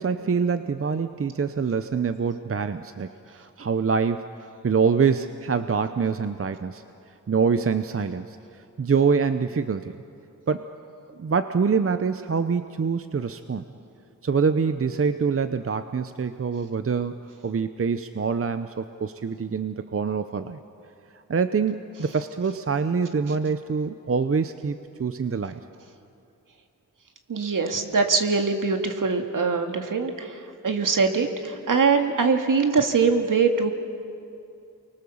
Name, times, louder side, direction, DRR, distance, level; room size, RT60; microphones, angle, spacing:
voice 1, 0.0-6.8 7.3-8.4 8.8-10.0 10.5-10.6 11.2-13.6 14.2-17.2 17.4-20.6 21.1-25.6, right 5 dB, 40° right, 10 dB, 0.8 m, -25 dB
voice 2, 27.3-33.7, right 4 dB, 65° right, 5 dB, 2.1 m, -23 dB
29.5 x 24.0 x 7.2 m, 2.6 s
wide cardioid pair, 85°, 34 cm